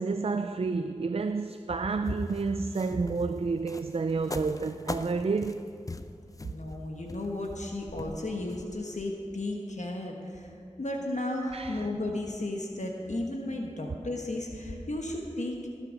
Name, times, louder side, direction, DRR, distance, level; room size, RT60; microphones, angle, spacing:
voice 1, 0.0-5.6 11.5-11.9, right 4 dB, 55° right, 0.4 m, -30 dB
sound 1, 2.1-9.1, left 2 dB, 30° left, 0.5 m, -42 dB
voice 2, 6.5-10.5 10.8-15.7, left 1 dB, 75° left, 1.2 m, -34 dB
19.0 x 7.5 x 5.1 m
wide cardioid pair, 45°, 12 cm